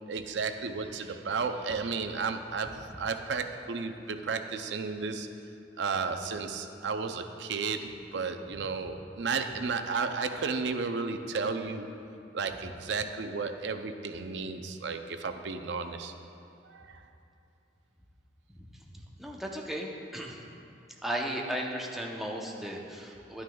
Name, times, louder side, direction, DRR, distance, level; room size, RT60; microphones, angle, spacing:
voice 1, 0.1-5.3 5.8-11.9 12.3-16.1 16.6-17.0, right 4 dB, 70° right, 7 dB, 0.5 m, -33 dB
voice 2, 19.2-20.4 21.0-23.4, right 1 dB, ahead, -1 dB, 0.7 m, -35 dB
11.5 x 9.4 x 2.3 m, 2.7 s
head